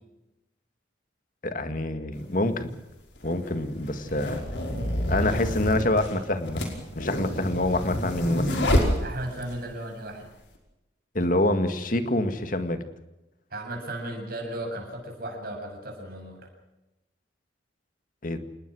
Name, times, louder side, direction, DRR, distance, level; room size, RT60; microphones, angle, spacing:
voice 1, 1.4-2.7 3.2-4.4 5.1-6.7 7.0-8.5 11.1-12.8 18.2-18.4, left 1 dB, 45° left, 9 dB, 2.0 m, -26 dB
sound 1, 2.1-2.2 3.2-9.6, equal, 75° left, 5.3 m, -28 dB
voice 2, 9.0-10.3 13.5-16.4, right 1 dB, 55° right, 1 dB, 7.5 m, -35 dB
27.5 x 20.0 x 6.4 m, 0.99 s
head